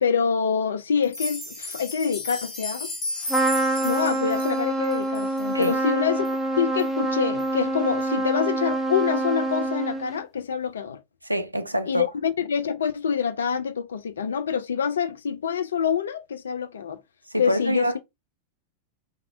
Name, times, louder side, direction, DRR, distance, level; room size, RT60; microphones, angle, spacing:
voice 1, 0.0-2.9 3.8-11.0 11.9-17.0 17.4-17.9, left 7 dB, 65° left, 0.3 m, -26 dB
sound 1, 1.0-5.8 6.2-6.3 6.8-6.9 7.4-7.5, left 1 dB, 30° left, 0.7 m, -34 dB
Trumpet, 3.3-10.2, right 2 dB, ahead, 0.5 m, -26 dB
voice 2, 11.3-12.1 17.3-18.0, equal, 85° right, 0.3 m, -26 dB
2.6 x 2.0 x 2.5 m
figure-of-eight pair, 90°, 0 cm